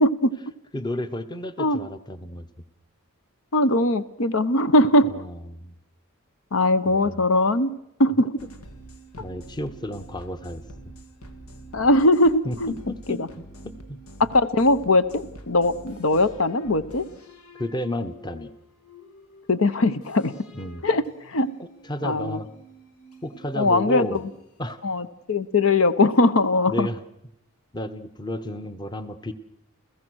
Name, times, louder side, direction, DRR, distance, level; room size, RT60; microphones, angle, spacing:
voice 1, 0.0-0.3 1.6-1.8 3.5-5.1 6.5-7.7 8.0-8.4 11.7-12.7 13.1-13.3 14.2-17.0 19.5-20.3 20.8-21.5 22.0-22.4 23.5-24.2 24.8-26.9, left 2 dB, 65° left, 13 dB, 0.9 m, -20 dB
voice 2, 0.7-2.5 5.0-5.7 6.9-7.2 9.2-10.9 12.4-14.0 17.6-18.5 20.5-20.8 21.6-22.5 23.2-24.2 24.6-24.8 26.7-27.0 27.7-29.3, left 1 dB, 20° left, 12 dB, 0.9 m, -32 dB
sound 1, 8.4-24.8, equal, 85° left, 2.0 m, -47 dB
29.5 x 15.5 x 6.3 m, 0.79 s
head